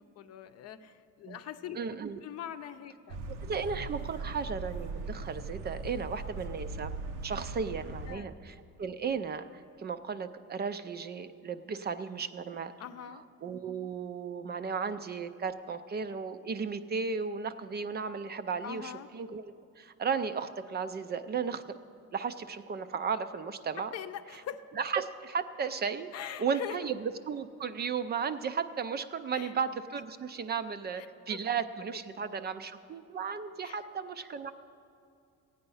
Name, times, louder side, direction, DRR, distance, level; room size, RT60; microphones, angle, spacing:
voice 1, 0.0-1.8 2.2-3.2 8.1-8.3 12.8-13.2 18.6-19.1 23.9-24.6 26.1-26.8 29.3-29.5 31.0-31.4 33.6-33.8, left 10 dB, 55° left, 9 dB, 0.7 m, -42 dB
voice 2, 1.7-2.2 3.4-12.7 13.1-21.8 22.1-23.9 24.3-24.4 24.8-26.1 26.4-34.5, right 6 dB, 35° right, 11 dB, 0.4 m, -35 dB
sound 1, 3.1-8.2, right 3 dB, 85° right, 1.0 m, -39 dB
16.0 x 9.0 x 5.5 m, 2.5 s
cardioid pair, 145°, 31 cm